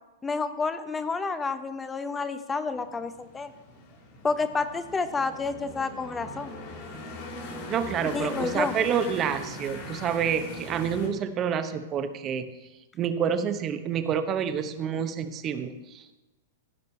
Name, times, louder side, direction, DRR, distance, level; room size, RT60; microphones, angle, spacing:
voice 1, 0.2-3.5 4.2-6.6 8.1-8.7, left 4 dB, 15° left, 11 dB, 0.7 m, -29 dB
sound 1, 2.7-11.1, left 1 dB, 50° left, 2.6 m, -40 dB
voice 2, 7.7-12.5 12.9-16.2, right 7 dB, 30° right, 10 dB, 0.8 m, -28 dB
15.0 x 5.2 x 4.3 m, 1.1 s
hypercardioid pair, 125°, 0 cm